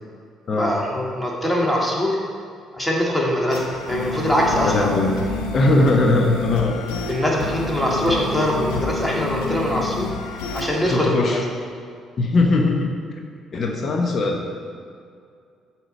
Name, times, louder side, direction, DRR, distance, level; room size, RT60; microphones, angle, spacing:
voice 1, 0.6-2.2 2.7-4.9 7.1-11.4, equal, 5° left, -3 dB, 2.1 m, -22 dB
sound 1, 3.5-11.0, left 4 dB, 75° left, 0.7 m, -29 dB
voice 2, 4.6-5.1 5.5-6.8 10.9-11.4 12.2-12.9 13.5-14.4, left 2 dB, 45° left, 2 dB, 0.9 m, -19 dB
7.9 x 4.6 x 5.5 m, 2.3 s
hypercardioid pair, 50°, 0 cm